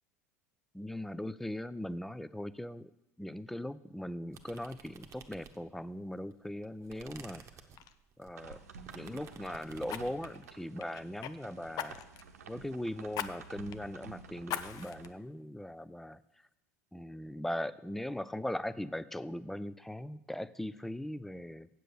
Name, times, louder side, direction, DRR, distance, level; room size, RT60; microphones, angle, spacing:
voice 1, 0.7-2.9 3.2-7.5 8.2-8.6 8.9-12.0 12.5-16.2 16.9-21.7, left 1 dB, 5° left, 17 dB, 0.4 m, -39 dB
sound 1, 4.3-5.9 6.3-10.2, right 7 dB, 35° right, 1.0 m, -53 dB
Fire, 7.8-8.0 9.9-11.3 11.8-12.3 13.1-13.3 13.7-13.8 14.5-15.1 15.6-15.7, left 10 dB, 50° left, 0.6 m, -40 dB
sound 2, 8.3-15.1, right 6 dB, 80° right, 0.8 m, -51 dB
7.6 x 7.6 x 6.7 m, 0.90 s
hypercardioid pair, 80°, 8 cm